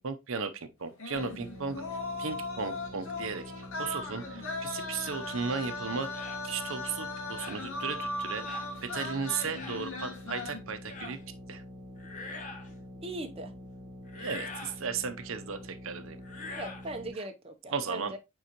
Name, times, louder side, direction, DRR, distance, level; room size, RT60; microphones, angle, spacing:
voice 1, 0.0-1.8 2.2-3.4 3.8-6.1 6.4-11.2 11.5-11.6 14.2-16.2 17.7-18.1, right 5 dB, 65° right, 0.7 m, -35 dB
sound 1, 1.0-10.6, left 2 dB, 70° left, 1.8 m, -38 dB
sound 2, 1.1-17.1, left 1 dB, 5° left, 2.7 m, -47 dB
sound 3, 6.1-6.4 7.4-7.7 8.5-8.7 9.5-9.8 10.9-11.2 12.0-12.7 14.1-14.8 16.2-16.9, left 3 dB, 35° left, 1.2 m, -43 dB
voice 2, 13.0-13.5 16.6-18.2, right 2 dB, 25° right, 0.7 m, -39 dB
9.4 x 3.7 x 2.9 m
head